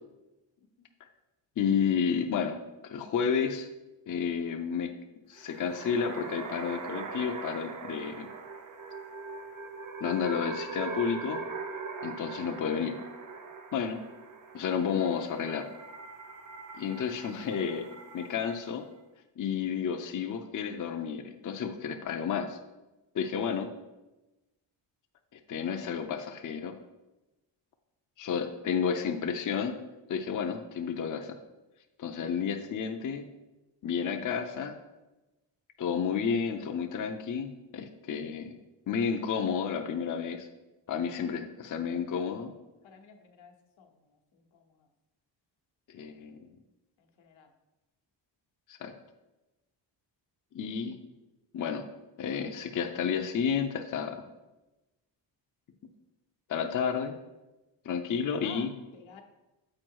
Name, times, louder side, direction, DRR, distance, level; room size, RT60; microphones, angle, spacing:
voice 1, 1.6-2.6 2.8-3.7 4.1-4.9 5.3-8.3 10.0-11.4 12.0-12.9 13.7-14.0 14.5-15.7 16.8-17.8 18.1-18.9 19.4-22.6 23.1-23.7 25.3-26.8 28.2-29.8 30.1-31.4 32.0-33.3 33.8-34.8 35.8-38.5 38.9-40.5 40.9-42.5 45.9-46.4 48.7-48.9 50.5-51.0 51.5-51.9 52.2-54.3 56.5-57.1 57.8-58.7, left 7 dB, 45° left, 5 dB, 0.5 m, -31 dB
sound 1, 5.4-18.7, right 4 dB, 45° right, 0.7 m, -41 dB
voice 2, 32.2-32.5 41.2-41.6 42.8-44.9 46.0-46.4 47.0-47.5 58.4-59.2, left 6 dB, 85° left, 4 dB, 1.1 m, -55 dB
7.6 x 4.7 x 4.6 m, 1.0 s
wide cardioid pair, 165°, 45 cm